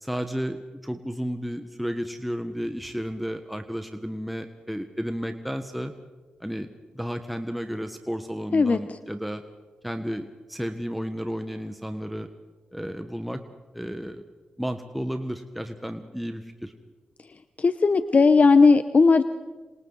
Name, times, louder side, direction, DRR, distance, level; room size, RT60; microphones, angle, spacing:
voice 1, 0.0-5.9 6.4-9.4 9.8-12.3 12.7-13.4 13.7-14.2 14.6-16.7, equal, ahead, 6 dB, 1.4 m, -32 dB
voice 2, 17.6-19.2, left 4 dB, 45° left, 11 dB, 0.9 m, -17 dB
26.5 x 26.5 x 4.1 m, 1.3 s
cardioid pair, 50°, 3 cm